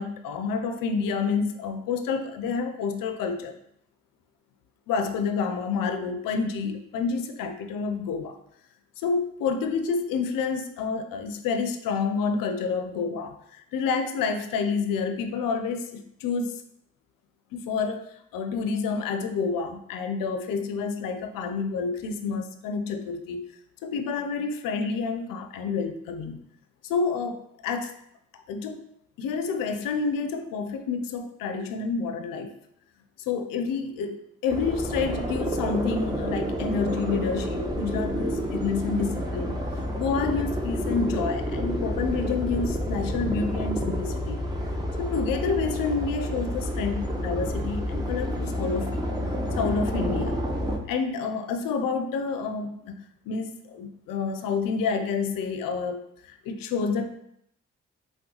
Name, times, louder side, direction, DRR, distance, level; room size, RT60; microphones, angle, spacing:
voice 1, 0.0-3.5 4.9-8.4 9.0-16.6 17.5-18.1 18.3-23.4 23.8-26.4 26.8-27.9 28.3-28.8 29.2-32.6 33.3-39.6 40.0-44.4 45.0-49.0 49.6-50.4 50.9-57.2, left 5 dB, 70° left, 8 dB, 0.5 m, -29 dB
sound 1, 34.5-50.8, equal, 10° right, 0.5 m, -29 dB
3.6 x 2.1 x 2.8 m, 0.73 s
supercardioid pair, 45°, 35 cm